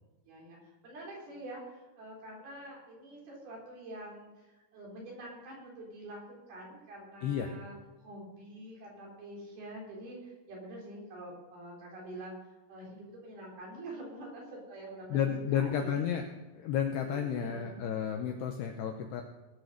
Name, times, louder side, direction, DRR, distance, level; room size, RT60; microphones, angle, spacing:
voice 1, 0.3-12.4 12.7-16.2 17.1-17.8, right 1 dB, 50° right, -3 dB, 5.2 m, -46 dB
voice 2, 15.1-16.2 16.5-19.2, left 8 dB, 90° left, 4 dB, 2.4 m, -32 dB
19.5 x 6.6 x 6.4 m, 1.1 s
omnidirectional pair, 5.9 m